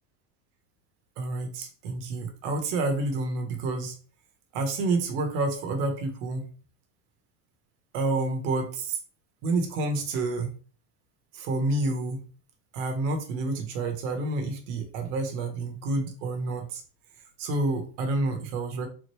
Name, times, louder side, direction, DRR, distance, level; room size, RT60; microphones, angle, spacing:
voice 1, 1.2-4.0 4.5-6.4 7.9-9.0 9.4-10.5 11.3-12.2 12.7-16.8 17.4-18.9, right 2 dB, 70° right, 4 dB, 1.0 m, -29 dB
3.9 x 3.0 x 3.0 m, 0.39 s
cardioid pair, 170°, 41 cm